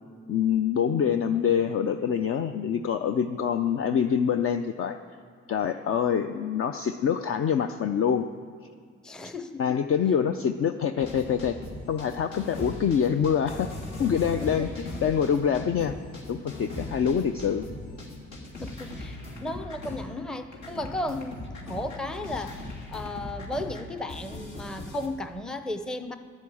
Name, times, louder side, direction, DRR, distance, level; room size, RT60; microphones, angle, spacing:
voice 1, 0.3-5.0 5.5-8.3 9.6-11.6 11.9-13.7 14.0-16.0 16.3-17.7, left 7 dB, 50° left, 8 dB, 0.5 m, -25 dB
voice 2, 9.0-9.8 14.4-14.7 18.6-26.2, left 1 dB, ahead, 9 dB, 0.6 m, -35 dB
sound 1, 11.0-20.3 20.5-25.1, left 1 dB, 70° left, 2.8 m, -39 dB
11.0 x 10.5 x 8.5 m, 2.1 s
cardioid pair, 90°, 30 cm